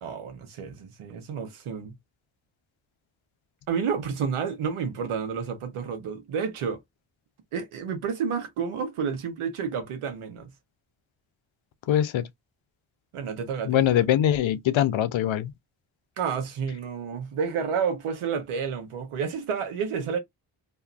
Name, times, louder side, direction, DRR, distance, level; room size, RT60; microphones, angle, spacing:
voice 1, 0.0-1.9 3.7-6.8 7.5-10.5 13.1-14.0 16.2-20.2, right 6 dB, 85° right, 1.0 m, -30 dB
voice 2, 11.9-12.3 13.7-15.5, left 11 dB, 70° left, 0.7 m, -22 dB
2.7 x 2.4 x 2.3 m
supercardioid pair, 40°, 49 cm